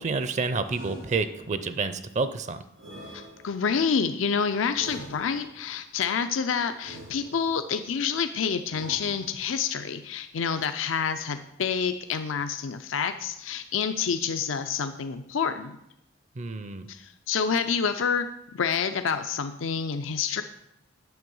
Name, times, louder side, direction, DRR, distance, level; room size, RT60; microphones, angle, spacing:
voice 1, 0.0-2.6 16.4-16.9, right 4 dB, 40° right, 11 dB, 0.5 m, -29 dB
sound 1, 0.6-1.7 2.8-3.8 4.7-5.7 6.8-7.7 8.7-9.6, right 1 dB, 90° right, 4.2 m, -45 dB
voice 2, 3.1-15.7 16.9-18.3 18.5-20.4, left 6 dB, 80° left, 9 dB, 0.5 m, -28 dB
9.4 x 6.9 x 5.4 m, 0.82 s
head